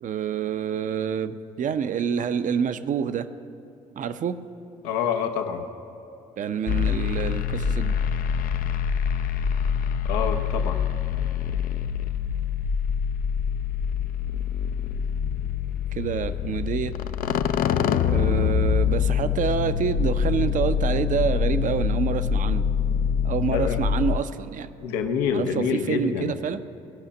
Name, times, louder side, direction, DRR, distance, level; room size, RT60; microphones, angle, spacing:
voice 1, 0.0-3.3 4.0-4.4 6.4-8.0 15.9-16.9 18.1-22.6 23.2-24.7 25.3-26.6, right 7 dB, 50° right, 12 dB, 0.6 m, -27 dB
voice 2, 4.8-5.6 10.0-10.8 17.7-18.0 23.5-23.8 24.8-26.3, left 7 dB, 80° left, 6 dB, 0.8 m, -27 dB
sound 1, 6.7-24.2, left 7 dB, 55° left, 0.5 m, -25 dB
17.0 x 5.7 x 7.1 m, 3.0 s
hypercardioid pair, 55°, 18 cm